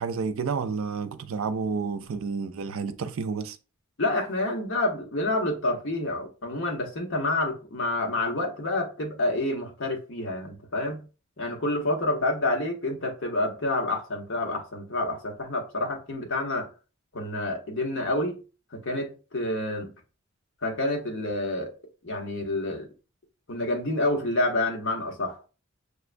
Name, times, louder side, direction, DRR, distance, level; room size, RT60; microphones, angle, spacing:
voice 1, 0.0-3.6, right 5 dB, 85° right, 0.4 m, -30 dB
voice 2, 4.0-11.0 11.4-16.7 17.1-18.4 18.7-19.9 20.6-21.7 22.0-22.9 23.5-25.5, left 2 dB, 65° left, 1.1 m, -28 dB
6.5 x 2.2 x 2.5 m
head